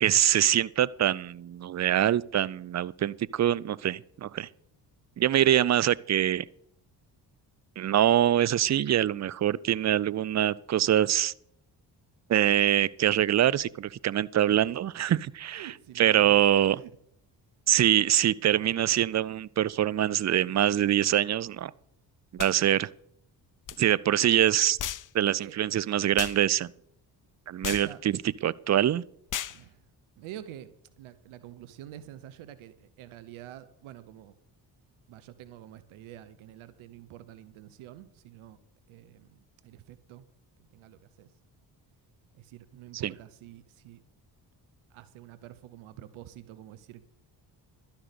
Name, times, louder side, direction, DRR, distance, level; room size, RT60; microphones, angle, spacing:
voice 1, 0.0-4.5 5.2-6.5 7.8-11.3 12.3-15.7 16.0-16.8 17.7-21.7 22.3-22.9 23.8-24.8 25.1-26.7 27.5-29.0 43.0-43.1, right 11 dB, 35° right, 0.5 m, -24 dB
voice 2, 15.5-16.4 16.7-16.9 25.4-25.6 27.6-28.0 29.5-29.8 30.2-34.3 35.1-38.6 38.9-40.2 40.6-41.3 42.3-44.0 44.9-47.0, right 12 dB, 80° right, 0.9 m, -47 dB
sound 1, 22.4-22.6 23.7-23.8 24.8-25.1 26.2-26.4 27.6-27.9 29.3-29.6, left 11 dB, 40° left, 0.6 m, -34 dB
12.0 x 10.5 x 5.2 m
hypercardioid pair, 50°, 49 cm